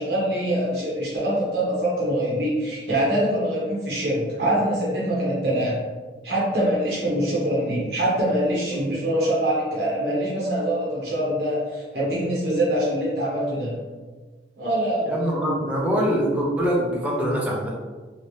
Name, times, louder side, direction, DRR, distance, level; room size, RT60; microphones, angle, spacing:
voice 1, 0.0-5.8 6.2-13.8 14.6-15.1, right 1 dB, 70° right, -6 dB, 1.0 m, -24 dB
voice 2, 15.1-17.7, equal, 10° right, -4 dB, 0.6 m, -24 dB
3.2 x 2.7 x 3.1 m, 1.4 s
head